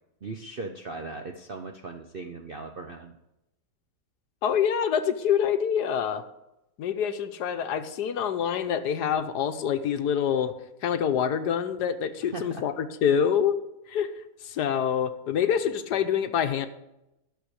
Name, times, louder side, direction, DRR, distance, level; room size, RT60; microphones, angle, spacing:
voice 1, 0.2-3.2 12.3-12.6, right 3 dB, 55° right, 4 dB, 0.6 m, -38 dB
voice 2, 4.4-6.2 6.8-10.5 10.8-13.5 13.9-14.1 14.4-16.7, left 8 dB, 70° left, 9 dB, 1.3 m, -26 dB
11.5 x 6.8 x 6.4 m, 0.89 s
omnidirectional pair, 1.9 m